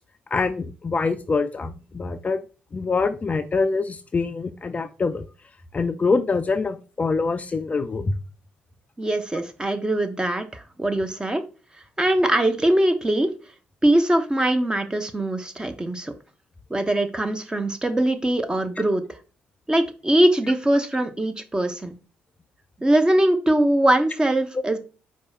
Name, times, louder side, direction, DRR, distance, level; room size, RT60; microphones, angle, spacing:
voice 1, 0.3-2.4 2.7-5.2 5.7-8.1, left 4 dB, 30° left, 10 dB, 0.4 m, -24 dB
voice 2, 9.0-11.4 12.0-13.3 13.8-16.1 16.7-19.0 19.7-21.9 22.8-24.8, right 1 dB, 15° right, 7 dB, 0.8 m, -22 dB
4.6 x 2.3 x 4.2 m, 0.34 s
hypercardioid pair, 45°, 5 cm